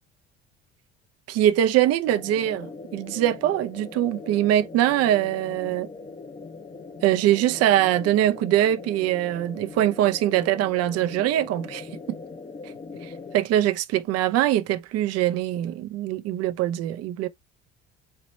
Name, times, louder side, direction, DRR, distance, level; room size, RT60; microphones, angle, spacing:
voice 1, 1.3-5.9 7.0-12.2 13.3-17.3, right 12 dB, 50° right, 0.6 m, -23 dB
sound 1, 2.0-13.4, left 4 dB, 20° left, 0.7 m, -41 dB
4.5 x 2.9 x 3.0 m
hypercardioid pair, 60°, 32 cm